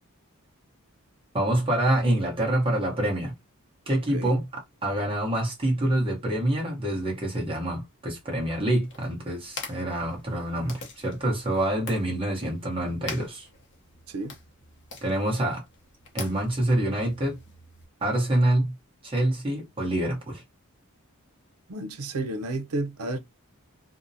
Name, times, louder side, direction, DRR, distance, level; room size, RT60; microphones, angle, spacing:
voice 1, 1.3-3.3 3.9-13.5 15.0-15.6 16.1-17.4 18.0-18.7 19.0-20.4, right 1 dB, 25° right, 1.0 m, -26 dB
sound 1, 8.8-17.8, left 4 dB, 55° left, 0.7 m, -45 dB
voice 2, 21.7-23.2, right 2 dB, 85° right, 0.6 m, -31 dB
2.6 x 2.1 x 2.7 m
head